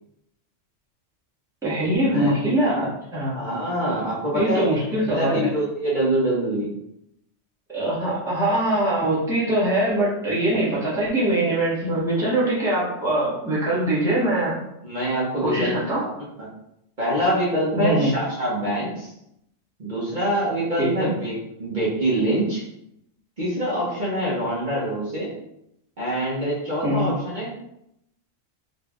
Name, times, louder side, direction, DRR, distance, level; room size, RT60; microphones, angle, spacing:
voice 1, 1.6-3.3 4.3-5.5 7.7-14.6 15.4-16.0 17.7-18.1 20.8-21.1 26.8-27.1, right 1 dB, 5° right, -8 dB, 1.0 m, -22 dB
voice 2, 3.4-6.8 14.8-16.1 16.4-16.5 17.0-19.1 19.8-22.6 23.4-25.3 26.0-27.5, right 1 dB, 40° right, -7 dB, 1.1 m, -25 dB
4.0 x 2.4 x 3.5 m, 0.79 s
omnidirectional pair, 1.3 m